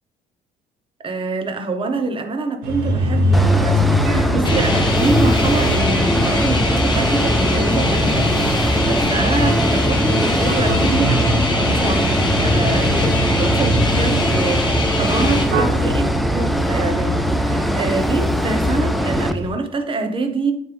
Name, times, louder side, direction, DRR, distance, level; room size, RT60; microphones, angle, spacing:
voice 1, 1.0-20.5, right 3 dB, 30° right, 0.9 m, -25 dB
sound 1, 2.6-19.5, right 1 dB, 80° right, 1.3 m, -24 dB
sound 2, 3.3-19.3, equal, ahead, 0.3 m, -21 dB
sound 3, 4.4-15.4, left 2 dB, 25° left, 1.2 m, -22 dB
9.0 x 3.3 x 3.4 m
cardioid pair, 110°, 17 cm